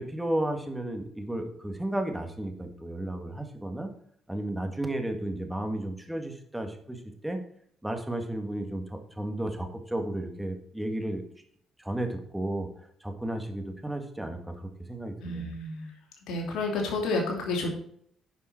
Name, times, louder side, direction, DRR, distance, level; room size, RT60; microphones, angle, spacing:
voice 1, 0.0-3.9 4.3-7.4 7.8-11.2 11.8-12.7 13.0-15.6, right 1 dB, 10° right, 5 dB, 1.9 m, -33 dB
voice 2, 15.2-15.9 16.3-17.7, left 2 dB, 75° left, 0 dB, 2.8 m, -30 dB
10.0 x 5.5 x 4.5 m, 0.65 s
supercardioid pair, 70°, 0 cm